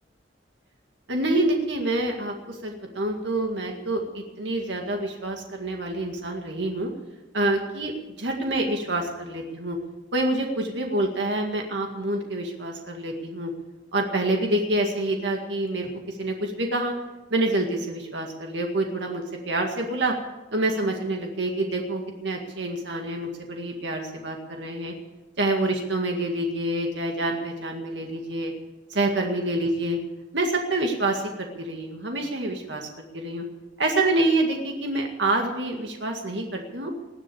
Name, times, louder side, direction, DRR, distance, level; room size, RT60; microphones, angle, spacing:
voice 1, 1.1-6.9 7.3-9.8 10.1-13.5 13.9-16.9 17.3-20.2 20.5-24.9 25.4-28.5 28.9-30.0 30.3-33.4 33.8-36.9, right 2 dB, 75° right, 2 dB, 2.0 m, -27 dB
20.0 x 7.6 x 8.6 m, 1.1 s
head